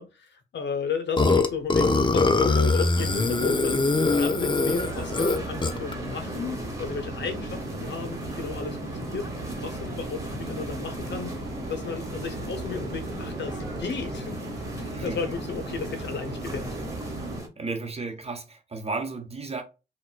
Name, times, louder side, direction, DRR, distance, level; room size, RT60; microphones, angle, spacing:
voice 1, 0.0-3.9 4.2-9.3 9.6-11.4 11.7-14.4 14.8-16.8, left 6 dB, 75° left, 0.7 m, -34 dB
Burping eructation, 1.2-5.9, left 3 dB, 25° left, 0.5 m, -22 dB
sound 1, 2.9-17.4, right 2 dB, 85° right, 1.2 m, -36 dB
sound 2, 4.7-17.5, right 1 dB, 15° right, 1.1 m, -41 dB
voice 2, 17.6-19.6, right 3 dB, 35° right, 0.8 m, -33 dB
4.1 x 2.3 x 2.2 m
cardioid pair, 60°, 19 cm